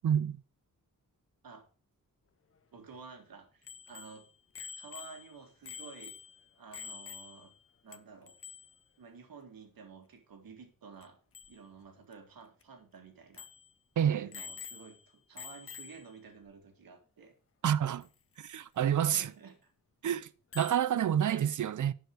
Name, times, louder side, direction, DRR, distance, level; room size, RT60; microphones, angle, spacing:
voice 1, 0.0-0.4 14.0-14.3 17.6-18.1 18.4-19.3 20.0-20.3 20.5-21.9, right 9 dB, 60° right, 0.6 m, -28 dB
voice 2, 2.7-4.3 4.8-6.2 6.6-7.5 7.8-8.4 9.0-11.2 11.5-13.5 14.0-17.4 18.8-19.7 21.3-21.5, right 5 dB, 80° right, 1.9 m, -51 dB
Bicycle bell, 3.6-7.6 7.9-8.0 8.3-8.8 11.0-11.1 11.3-11.5 12.1-12.2 12.6-12.7 13.3-13.7 14.3-15.1 15.4-16.1 18.0-18.1 20.5-20.9, left 6 dB, 40° left, 0.6 m, -47 dB
10.5 x 4.8 x 4.9 m
wide cardioid pair, 95°, 34 cm